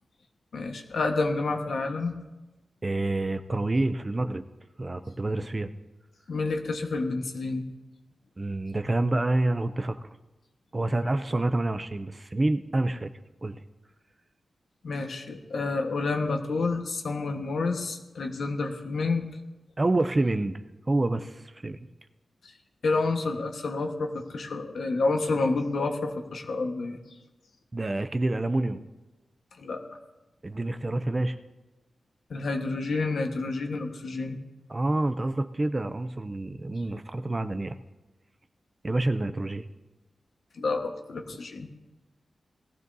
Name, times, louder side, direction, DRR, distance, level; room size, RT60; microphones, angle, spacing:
voice 1, 0.5-2.1 6.3-7.7 14.8-19.3 22.4-22.5 22.8-27.0 29.6-29.8 32.3-34.4 40.5-41.7, left 3 dB, 70° left, 4 dB, 1.3 m, -29 dB
voice 2, 2.8-4.4 4.8-5.7 8.4-10.1 10.7-13.1 13.4-13.6 19.8-20.6 20.9-21.8 27.7-28.9 30.4-31.4 34.7-37.7 38.8-39.7, right 2 dB, 20° right, 10 dB, 0.5 m, -27 dB
19.0 x 15.0 x 2.7 m, 1.1 s
wide cardioid pair, 170°, 0 cm